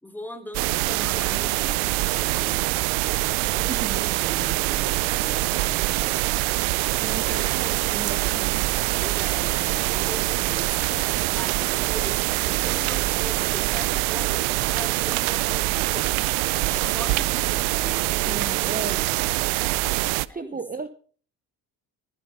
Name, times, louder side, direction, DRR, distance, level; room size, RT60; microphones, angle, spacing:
voice 1, 0.0-6.7 7.2-7.6 8.9-16.1 16.7-19.7 20.3-20.6, left 1 dB, 5° left, 6 dB, 3.3 m, -41 dB
sound 1, 0.5-20.3, right 21 dB, 90° right, 0.6 m, -24 dB
voice 2, 3.7-4.2 7.0-8.6 18.3-19.0 20.3-20.9, right 4 dB, 20° right, 11 dB, 1.1 m, -35 dB
15.0 x 10.5 x 5.7 m, 0.44 s
supercardioid pair, 65°, 46 cm